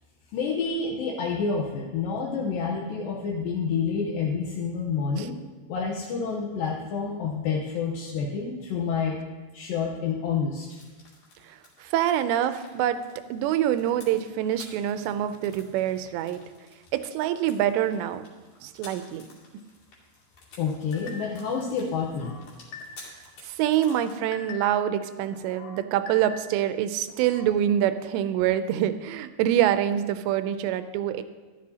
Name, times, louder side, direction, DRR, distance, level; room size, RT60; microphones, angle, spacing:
voice 1, 0.3-5.3 5.7-9.2 9.5-10.8 20.6-22.4, left 5 dB, 75° left, -2 dB, 2.3 m, -28 dB
sound 1, 10.7-24.1, left 3 dB, 50° left, 3.8 m, -53 dB
voice 2, 11.8-13.0 13.3-16.4 16.9-18.2 18.6-19.3 23.4-31.2, right 11 dB, 85° right, 11 dB, 2.8 m, -25 dB
sound 2, 20.9-21.5 22.0-23.2 23.6-24.9 25.3-26.7 27.1-27.6, left 4 dB, 90° left, 1.8 m, -45 dB
14.0 x 11.5 x 2.8 m, 1.3 s
omnidirectional pair, 5.0 m